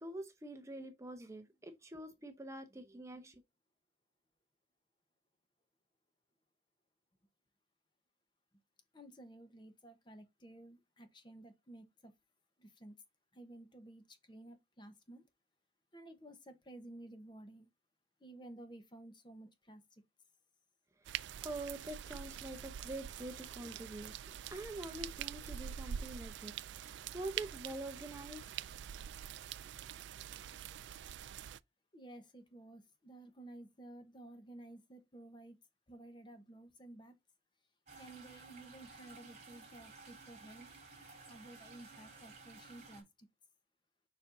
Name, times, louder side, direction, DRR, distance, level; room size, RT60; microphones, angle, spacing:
voice 1, 0.0-3.4 21.4-24.1 24.5-28.7, right 1 dB, 15° right, 0.7 m, -46 dB
voice 2, 8.9-12.1 12.6-12.9 13.3-15.3 15.9-17.7 18.2-20.0 31.9-35.6 35.9-37.2 38.0-40.7 41.3-43.3, right 1 dB, 25° left, 1.0 m, -54 dB
sound 1, 21.0-31.6, right 9 dB, 75° right, 0.3 m, -45 dB
sound 2, 37.9-43.0, right 4 dB, 40° right, 3.7 m, -55 dB
7.2 x 5.3 x 2.6 m
head